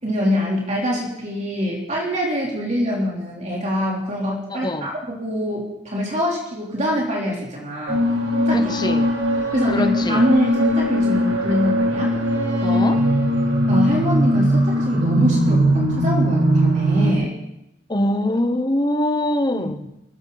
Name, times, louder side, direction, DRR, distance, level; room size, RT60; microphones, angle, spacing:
voice 1, 0.0-8.0 8.5-8.7 9.5-12.1 12.7-12.8 13.7-17.3 19.5-19.7, equal, 40° right, 3.6 m, -24 dB
voice 2, 4.5-4.9 8.5-9.1 9.7-10.3 12.6-13.1 17.9-20.0, left 1 dB, 25° left, 1.1 m, -23 dB
sound 1, 7.9-17.1, equal, 85° right, 5.4 m, -19 dB
22.5 x 15.0 x 4.1 m
head